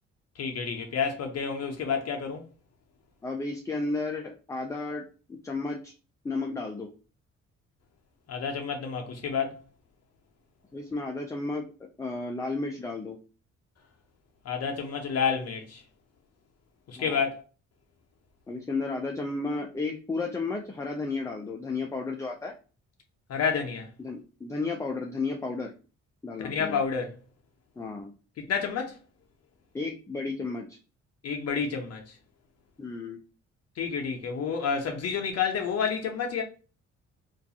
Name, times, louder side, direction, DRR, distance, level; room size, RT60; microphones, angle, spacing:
voice 1, 0.4-2.5 8.3-9.6 14.4-15.8 16.9-17.4 23.3-23.9 26.4-27.1 28.4-29.0 31.2-32.2 33.8-36.4, left 6 dB, 55° left, 0.6 m, -29 dB
voice 2, 3.2-5.9 6.2-6.9 10.7-11.7 12.0-13.2 17.0-17.2 18.5-22.5 24.0-25.7 26.2-26.8 27.8-28.1 29.7-30.8 32.8-33.2, left 3 dB, 10° left, 0.3 m, -33 dB
2.4 x 2.3 x 2.6 m
cardioid pair, 90°, 30 cm